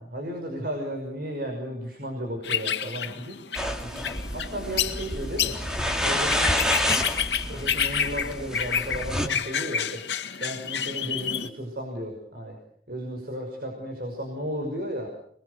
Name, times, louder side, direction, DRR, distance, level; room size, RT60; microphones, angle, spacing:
voice 1, 0.0-3.4 3.8-5.6 6.0-6.6 7.5-10.0 10.4-12.6 12.9-15.1, equal, 55° right, 2 dB, 5.9 m, -34 dB
sound 1, 2.4-11.5, left 7 dB, 85° left, 1.9 m, -29 dB
sound 2, 3.5-9.3, equal, 5° right, 2.5 m, -29 dB
27.5 x 21.5 x 6.7 m, 0.68 s
head